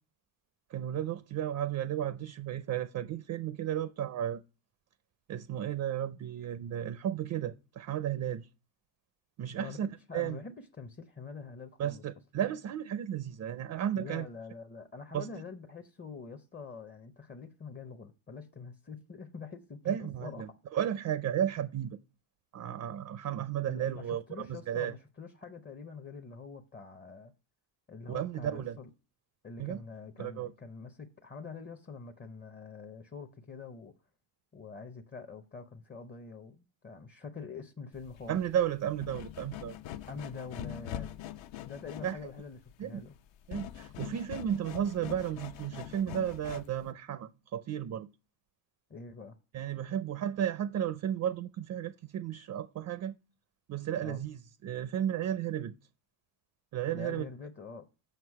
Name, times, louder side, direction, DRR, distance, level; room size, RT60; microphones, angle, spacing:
voice 1, 0.7-4.4 5.3-8.5 9.4-10.4 11.8-14.3 15.1-15.3 19.9-22.0 22.5-24.9 28.1-28.8 29.6-29.8 30.2-30.5 38.3-39.8 42.0-42.2 42.8-43.0 43.5-48.1 49.5-53.2 53.7-55.7 56.7-57.3, right 10 dB, 40° right, 0.4 m, -34 dB
voice 2, 9.6-12.0 14.0-20.5 23.6-27.3 27.9-28.9 29.4-33.9 34.5-38.4 40.1-41.1 41.6-43.2 48.9-49.4 54.0-54.2 56.9-57.9, left 4 dB, 20° left, 0.6 m, -45 dB
sound 1, 37.9-46.9, left 12 dB, 65° left, 0.7 m, -44 dB
8.0 x 5.9 x 4.6 m
cardioid pair, 140°, 49 cm